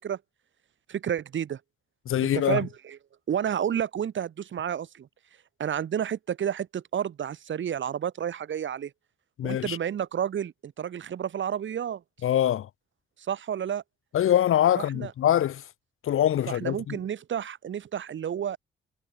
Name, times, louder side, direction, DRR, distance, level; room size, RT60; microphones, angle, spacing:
voice 1, 0.9-1.6 2.2-3.0 3.3-5.1 5.6-8.9 9.4-12.0 13.3-13.8 14.8-15.1 16.5-18.6, right 9 dB, 65° right, 3.3 m, -30 dB
voice 2, 2.0-2.6 9.4-9.8 12.2-12.7 14.1-15.6 16.0-17.0, left 11 dB, 80° left, 1.6 m, -24 dB
wide cardioid pair, 140°, 21 cm